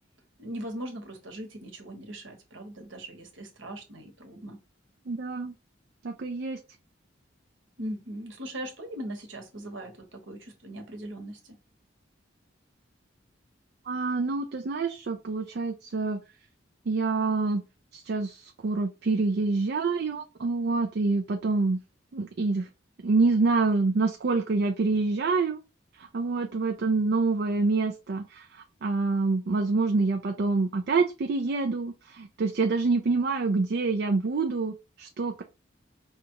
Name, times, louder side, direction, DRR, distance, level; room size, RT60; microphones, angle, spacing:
voice 1, 0.4-4.6 7.8-11.6, right 1 dB, 80° right, 1.2 m, -39 dB
voice 2, 5.1-5.5 6.0-6.6 13.9-16.2 16.9-17.6 17.9-21.8 22.1-22.7 23.0-25.6 26.0-35.4, right 3 dB, 60° right, 0.4 m, -26 dB
5.2 x 2.4 x 2.8 m
head